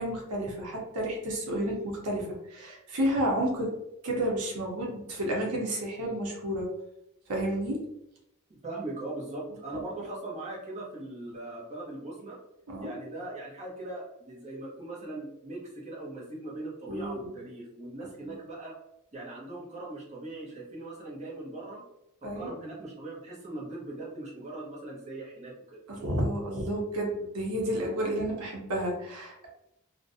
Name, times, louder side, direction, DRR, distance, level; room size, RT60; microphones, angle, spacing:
voice 1, 0.0-3.7 4.0-6.7 7.3-7.8 9.7-9.8 12.7-12.9 16.9-17.4 18.3-18.4 22.2-22.5 25.9-29.5, right 1 dB, 85° right, -1 dB, 0.7 m, -31 dB
voice 2, 8.6-12.4 12.8-18.8 19.1-21.8 22.2-25.8, right 2 dB, 30° right, -5 dB, 0.8 m, -40 dB
2.4 x 2.1 x 2.6 m, 0.83 s
head